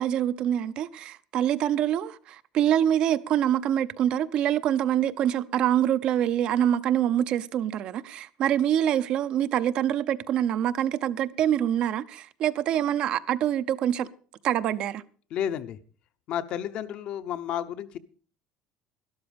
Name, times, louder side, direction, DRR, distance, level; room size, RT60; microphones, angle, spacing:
voice 1, 0.0-14.1 14.4-15.0, right 10 dB, 45° right, 0.6 m, -25 dB
voice 2, 15.3-15.8 16.3-18.0, left 10 dB, 50° left, 0.9 m, -31 dB
12.5 x 12.0 x 5.1 m
cardioid pair, 145°, 2 cm